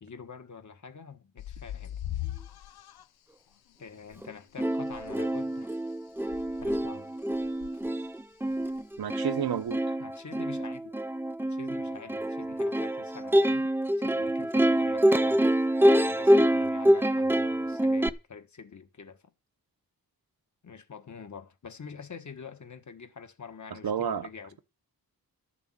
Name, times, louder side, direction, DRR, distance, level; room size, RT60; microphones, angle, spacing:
voice 1, 0.0-2.0 3.8-5.7 6.6-7.1 10.0-10.9 11.4-13.6 14.0-15.4 15.8-19.2 20.6-24.6, left 5 dB, 50° left, 1.4 m, -46 dB
sound 1, 1.4-3.1 4.1-4.2 4.6-4.7 4.9-5.4 6.2-6.9 7.3-7.9 8.5-9.0 9.7-9.8, left 13 dB, 90° left, 0.6 m, -40 dB
Plucked string instrument, 4.2-4.3 4.6-18.1, right 1 dB, 5° right, 0.6 m, -26 dB
voice 2, 9.0-9.9 23.7-24.3, right 8 dB, 80° right, 1.0 m, -31 dB
12.5 x 7.0 x 7.4 m
wide cardioid pair, 135°, 37 cm